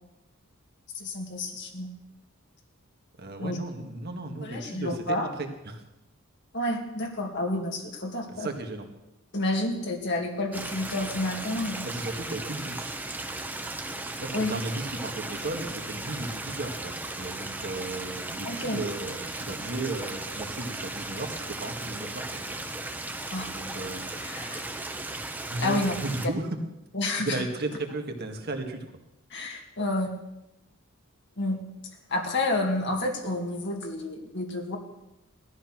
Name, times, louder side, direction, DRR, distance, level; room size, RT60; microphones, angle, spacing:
voice 1, 0.9-1.9 3.4-3.6 4.4-5.3 6.5-8.5 9.3-11.9 14.3-14.5 18.4-18.8 23.3-23.5 24.2-24.6 25.6-25.9 26.9-27.4 29.3-30.1 31.4-31.6 32.1-34.8, left 2 dB, 55° left, 1 dB, 2.4 m, -29 dB
voice 2, 3.2-5.8 8.3-8.9 11.8-13.0 14.2-22.3 23.5-24.1 25.5-26.5 27.2-28.8, right 2 dB, 50° right, 4 dB, 2.0 m, -35 dB
Stream, 10.5-26.3, right 2 dB, 10° right, 1.0 m, -36 dB
17.0 x 13.0 x 6.1 m, 0.91 s
head